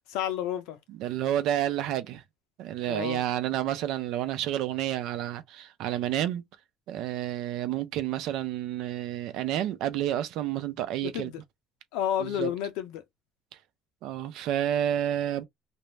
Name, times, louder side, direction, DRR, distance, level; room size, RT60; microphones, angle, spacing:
voice 1, 0.1-0.8 2.9-3.2 11.0-11.4 11.9-13.0, left 10 dB, 85° left, 0.7 m, -31 dB
voice 2, 0.9-2.2 2.6-6.4 6.9-11.3 12.2-12.5 14.0-15.4, right 11 dB, 65° right, 0.5 m, -30 dB
2.5 x 2.1 x 3.1 m
cardioid pair, 140°, 0 cm